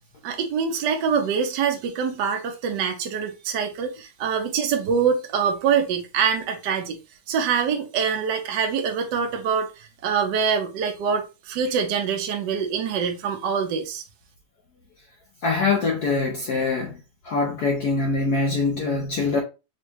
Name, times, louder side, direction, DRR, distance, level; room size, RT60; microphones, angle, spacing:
voice 1, 0.2-7.0 7.3-9.7 10.0-14.0, right 6 dB, 70° right, 1.1 m, -24 dB
voice 2, 15.4-17.0 17.2-19.4, left 3 dB, 70° left, 0.9 m, -23 dB
5.1 x 2.3 x 3.1 m
omnidirectional pair, 2.4 m